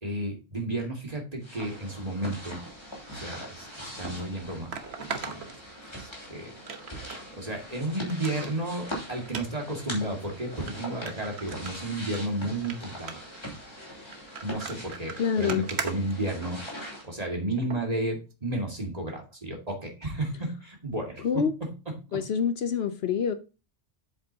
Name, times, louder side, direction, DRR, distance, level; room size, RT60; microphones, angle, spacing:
voice 1, 0.0-2.6 3.1-4.7 5.3-5.4 6.0-6.5 7.3-13.2 14.4-16.6 17.0-21.4 22.1-22.2, right 1 dB, 35° right, 2.2 m, -32 dB
sound 1, 1.4-17.1, equal, 25° left, 2.7 m, -41 dB
sound 2, 3.6-3.7 4.7-6.2 6.7-7.2 7.6-7.7 8.1-8.5 9.3-9.5 10.2-10.3 10.7-10.8 11.1-12.2 12.5-12.8 13.1-13.4 14.1-16.8 17.6-17.8 18.3-18.4, right 5 dB, 65° right, 1.3 m, -38 dB
voice 2, 15.2-15.7 21.2-21.5 22.1-23.3, left 7 dB, 65° left, 0.9 m, -26 dB
8.0 x 7.7 x 2.8 m
omnidirectional pair, 1.2 m